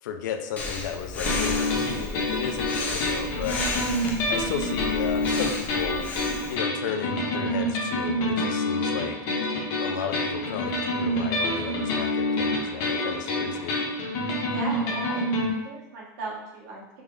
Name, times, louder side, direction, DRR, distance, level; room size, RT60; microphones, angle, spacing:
voice 1, 0.0-3.6 4.3-6.0 6.5-9.2 9.8-13.7, left 8 dB, 85° left, 6 dB, 0.4 m, -34 dB
Breathing, 0.6-6.5, left 2 dB, 15° left, 0.3 m, -33 dB
sound 1, 1.3-15.5, left 1 dB, 40° left, 0.7 m, -27 dB
voice 2, 14.5-17.0, right 2 dB, 65° right, -5 dB, 1.2 m, -37 dB
3.4 x 2.0 x 3.6 m, 0.90 s
supercardioid pair, 175°, 10 cm